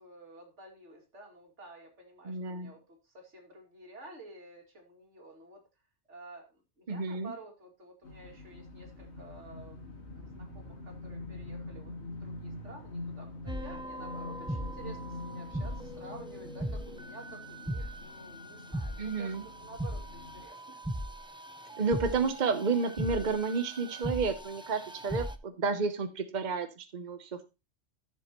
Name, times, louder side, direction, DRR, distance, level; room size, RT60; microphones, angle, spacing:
voice 1, 0.0-5.6 6.1-20.8 21.3-21.8 22.1-22.3, right 2 dB, 80° right, 1 dB, 2.9 m, -51 dB
voice 2, 2.2-2.7 6.9-7.3 19.0-19.4 21.8-27.5, right 4 dB, 40° right, 8 dB, 1.0 m, -31 dB
sound 1, 8.0-20.5, left 2 dB, 65° left, 2.3 m, -45 dB
sound 2, 13.5-25.4, equal, 5° right, 0.5 m, -39 dB
14.0 x 7.0 x 3.0 m, 0.27 s
omnidirectional pair, 1.2 m